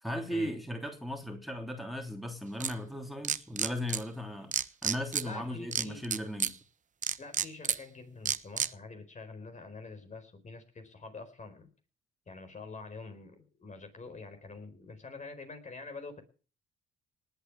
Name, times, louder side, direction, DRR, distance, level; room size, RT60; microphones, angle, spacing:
voice 1, 0.0-6.5, left 1 dB, ahead, 3 dB, 3.1 m, -37 dB
sound 1, 2.6-2.7 3.2-4.0 4.5-5.2 5.7-6.5 7.0-7.8 8.2-8.7, right 7 dB, 40° right, 0.9 m, -29 dB
voice 2, 5.2-6.0 7.2-11.7 12.3-16.2, left 3 dB, 35° left, 8 dB, 4.4 m, -46 dB
19.0 x 8.3 x 7.2 m, 0.39 s
cardioid pair, 90°, 20 cm